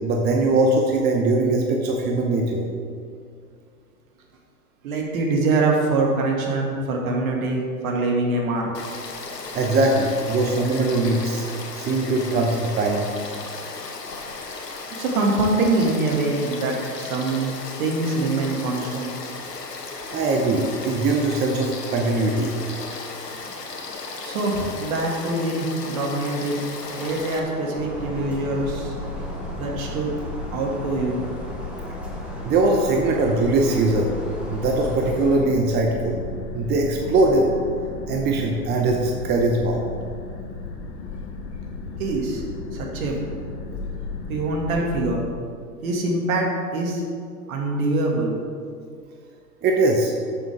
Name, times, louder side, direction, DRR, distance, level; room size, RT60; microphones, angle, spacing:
voice 1, 0.0-2.7 9.5-11.5 11.7-13.0 20.1-22.5 32.4-34.1 34.5-36.2 36.5-37.5 38.1-39.8 49.6-50.1, right 2 dB, 20° right, 1 dB, 0.9 m, -21 dB
voice 2, 4.8-8.7 13.4-13.5 14.9-17.5 17.8-19.1 24.2-26.6 27.0-28.9 29.6-30.1 30.5-31.2 42.0-42.4 42.7-43.2 44.3-45.2 45.8-47.0 47.5-48.4, right 2 dB, 60° right, 0 dB, 2.3 m, -24 dB
Frog / Stream, 8.7-27.4, left 3 dB, 85° left, 1.5 m, -35 dB
sound 1, 26.8-35.4, equal, ahead, 1.7 m, -40 dB
sound 2, 27.8-45.2, left 3 dB, 50° left, 1.5 m, -34 dB
13.5 x 7.0 x 3.6 m, 2.2 s
hypercardioid pair, 110°, 47 cm